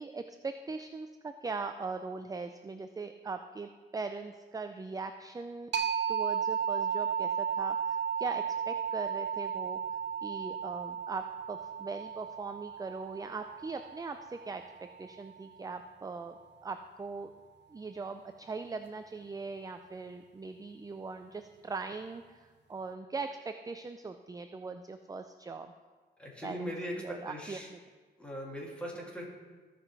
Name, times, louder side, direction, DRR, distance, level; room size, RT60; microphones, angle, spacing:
voice 1, 0.0-5.7 6.1-9.8 10.2-14.6 15.0-16.3 16.6-17.3 17.7-25.7 26.4-27.8 28.9-29.1, right 4 dB, 20° right, 8 dB, 0.4 m, -40 dB
sound 1, 5.7-15.1, right 7 dB, 75° right, 0.8 m, -34 dB
voice 2, 26.2-27.7 28.2-29.3, equal, 5° left, -4 dB, 2.9 m, -40 dB
16.0 x 5.9 x 3.4 m, 1.4 s
cardioid pair, 80°, 18 cm